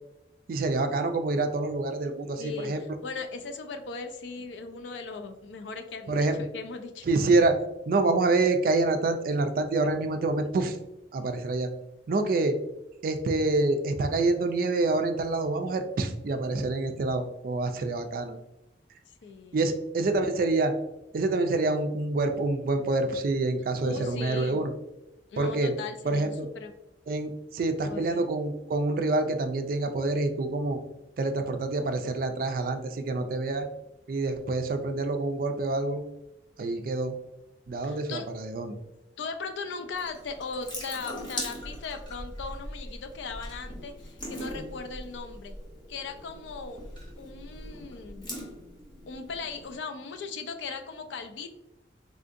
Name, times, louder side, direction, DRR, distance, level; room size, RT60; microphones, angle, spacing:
voice 1, 0.5-2.8 6.1-6.4 7.1-7.5 7.9-10.8 11.1-11.7 12.1-12.6 13.0-18.4 19.5-20.7 21.1-24.7 25.4-25.7 26.0-26.5 27.1-30.8 31.2-33.7 34.1-36.0 36.6-37.1 37.7-38.8, right 2 dB, 50° right, 7 dB, 0.3 m, -27 dB
voice 2, 2.4-7.1 19.1-19.7 23.8-24.7 25.3-26.4 26.6-26.7 27.8-28.2 37.8-38.3 39.2-45.5 45.9-46.8 47.2-48.3 49.1-51.5, left 4 dB, 75° left, 7 dB, 0.4 m, -38 dB
Water tap faucet / Sink (filling or washing) / Drip, 39.9-49.8, equal, 25° left, 0.7 m, -41 dB
3.6 x 2.5 x 2.5 m, 0.92 s
head